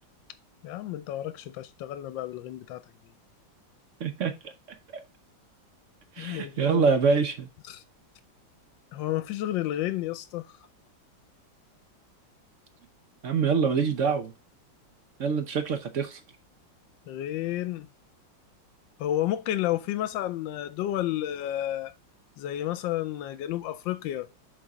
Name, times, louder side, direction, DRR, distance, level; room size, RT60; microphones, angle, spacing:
voice 1, 0.6-2.8 6.2-6.8 7.7-7.8 8.9-10.5 17.1-17.9 19.0-21.9 22.4-24.3, left 13 dB, 85° left, 1.3 m, -31 dB
voice 2, 4.0-4.3 4.9-5.0 6.2-7.5 13.2-14.3 15.2-16.2, right 5 dB, 55° right, 0.9 m, -25 dB
6.8 x 3.9 x 4.9 m
omnidirectional pair, 2.0 m